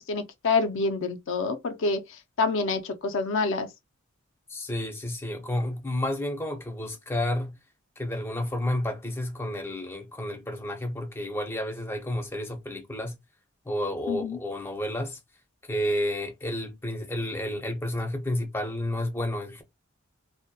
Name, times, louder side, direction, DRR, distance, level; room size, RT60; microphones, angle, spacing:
voice 1, 0.0-3.7 14.1-14.4, left 4 dB, 65° left, 0.4 m, -27 dB
voice 2, 4.5-7.6 8.0-13.2 13.7-15.2 15.7-19.6, left 1 dB, 10° left, 0.6 m, -31 dB
2.6 x 2.1 x 2.2 m
head